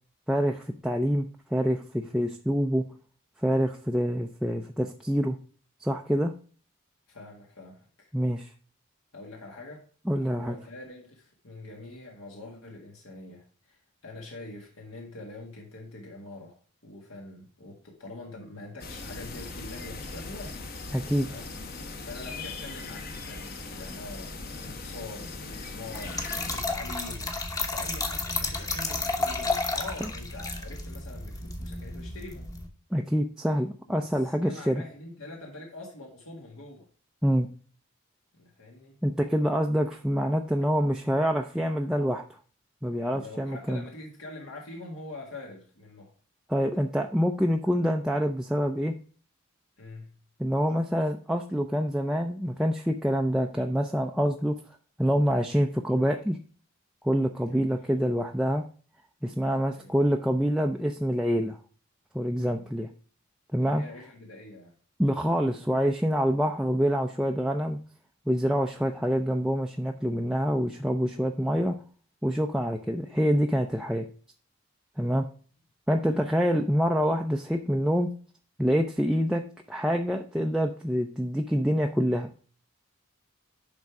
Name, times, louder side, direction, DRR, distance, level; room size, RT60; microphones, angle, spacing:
voice 1, 0.3-2.9 3.4-5.4 5.8-6.3 8.1-8.5 10.1-10.6 20.9-21.3 32.9-34.8 37.2-37.5 39.0-42.2 42.8-43.8 46.5-48.9 50.4-54.6 55.0-56.4 57.0-58.6 59.2-61.6 62.1-62.9 63.5-63.8 65.0-67.8 68.3-71.8 72.2-74.1 75.0-75.3 75.9-78.1 78.6-79.4 79.7-82.3, equal, 5° right, 0.4 m, -26 dB
voice 2, 7.1-8.1 9.1-9.9 10.2-16.6 16.8-20.6 21.1-21.5 21.8-27.3 27.7-32.5 33.9-36.9 38.3-39.0 43.1-46.1 49.8-50.2 57.4-57.7 59.7-60.0 62.5-62.7 63.6-64.8 76.1-76.5, left 2 dB, 75° left, 1.8 m, -44 dB
sound 1, 18.8-26.6, left 3 dB, 45° left, 1.0 m, -39 dB
Trickle dribble / Fill (with liquid), 25.9-32.7, left 2 dB, 15° left, 0.9 m, -32 dB
10.5 x 3.6 x 4.7 m
head